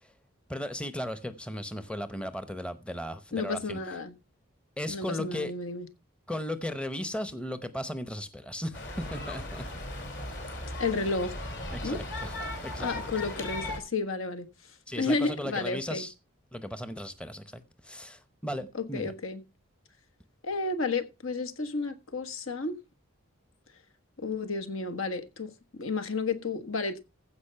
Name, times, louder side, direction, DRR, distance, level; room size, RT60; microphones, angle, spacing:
voice 1, 0.5-3.8 4.8-5.5 6.3-9.6 11.7-12.4 12.7-12.9 14.9-16.1 16.5-19.1, left 1 dB, 5° left, 0.7 m, -36 dB
voice 2, 3.3-4.1 4.9-5.9 10.8-11.3 11.8-12.0 12.8-14.5 15.0-16.1 18.7-19.4 20.4-22.8 24.2-27.0, left 3 dB, 75° left, 1.4 m, -32 dB
sound 1, 8.7-13.8, left 1 dB, 55° left, 4.0 m, -37 dB
15.5 x 5.2 x 5.6 m
head